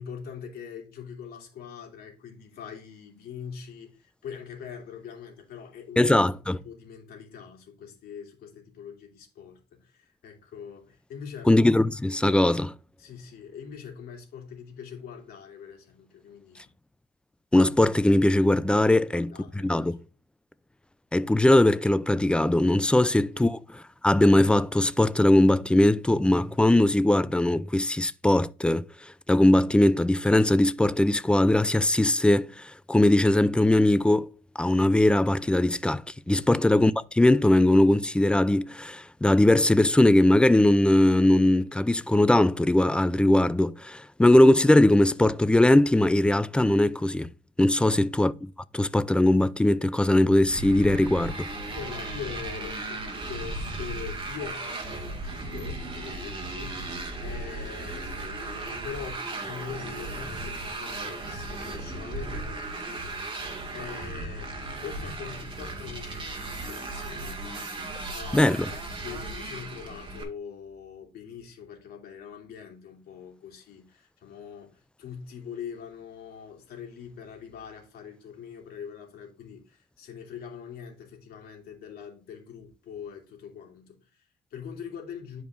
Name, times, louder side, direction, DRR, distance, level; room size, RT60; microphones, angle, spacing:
voice 1, 0.0-6.1 6.5-11.5 13.0-16.7 18.9-19.9 23.3-23.5 47.8-48.2 51.7-56.9 57.2-67.6 68.1-85.4, left 7 dB, 65° left, 2.8 m, -43 dB
voice 2, 6.0-6.6 11.5-12.7 17.5-19.3 19.6-20.0 21.1-28.8 29.3-34.3 34.6-47.3 47.6-51.5 68.3-68.7, left 1 dB, 5° left, 0.4 m, -20 dB
Motorcycle, 50.5-70.2, right 2 dB, 30° right, 2.0 m, -36 dB
10.5 x 5.0 x 2.6 m
cardioid pair, 110°, 17 cm